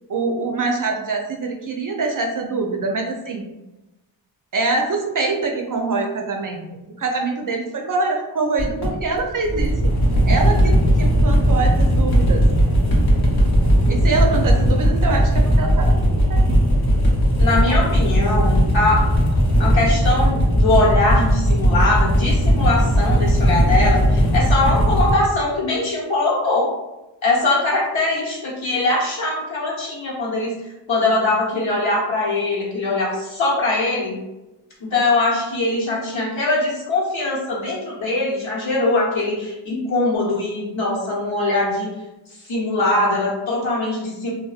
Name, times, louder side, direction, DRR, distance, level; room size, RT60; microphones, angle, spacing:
voice 1, 0.1-3.5 4.5-10.0 10.2-12.4 13.9-16.7, right 3 dB, 45° right, 2 dB, 0.5 m, -24 dB
sound 1, 8.6-25.1, equal, 50° left, 1.0 m, -17 dB
voice 2, 17.4-19.0 19.6-26.7 27.2-30.5 30.9-34.2 34.9-41.9 42.4-44.3, left 2 dB, 75° left, -6 dB, 1.1 m, -21 dB
2.6 x 2.2 x 2.4 m, 1.0 s
cardioid pair, 40°, 47 cm